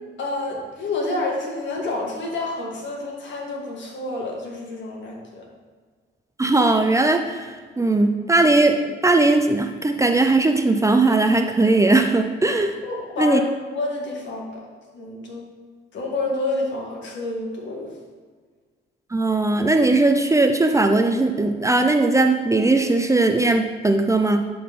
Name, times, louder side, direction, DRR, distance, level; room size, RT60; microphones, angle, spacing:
voice 1, 0.2-5.5 12.8-14.7 14.9-15.5 15.9-17.9, left 2 dB, 65° left, -2 dB, 2.1 m, -28 dB
voice 2, 6.4-12.7 13.2-13.4 19.1-24.4, right 2 dB, 15° right, 6 dB, 0.5 m, -19 dB
11.0 x 4.3 x 3.7 m, 1.5 s
cardioid pair, 90°, 20 cm